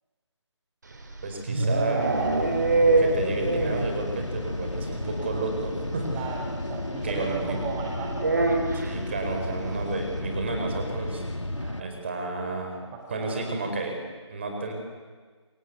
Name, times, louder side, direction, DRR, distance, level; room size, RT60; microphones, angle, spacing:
sound 1, 0.9-4.0 4.2-4.3 4.6-4.7 5.0-5.1 6.4-6.5 8.2-9.0, right 2 dB, 40° right, 3.5 m, -24 dB
voice 1, 1.2-2.2 3.0-6.2 7.0-7.6 8.7-11.2 11.8-12.8 13.1-13.9 14.3-14.7, right 3 dB, 25° right, 3 dB, 4.8 m, -31 dB
sound 2, 2.0-11.8, left 1 dB, 80° left, 2.4 m, -33 dB
voice 2, 6.0-8.5 11.5-11.9 12.7-13.4, right 5 dB, 5° right, 0 dB, 0.8 m, -36 dB
27.0 x 22.5 x 8.3 m, 1.5 s
figure-of-eight pair, 160°, 15 cm